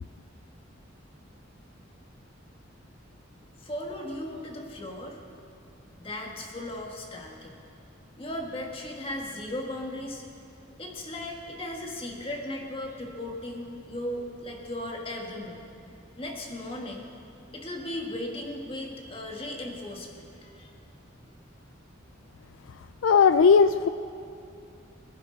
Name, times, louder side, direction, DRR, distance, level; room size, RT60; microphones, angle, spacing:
voice 1, 3.6-5.2 6.0-7.6 8.2-10.2 10.8-15.6 16.2-17.1 17.5-20.7, left 1 dB, 30° left, 0 dB, 1.8 m, -37 dB
voice 2, 23.0-23.9, left 6 dB, 75° left, 11 dB, 0.4 m, -18 dB
24.0 x 10.5 x 4.1 m, 2.6 s
head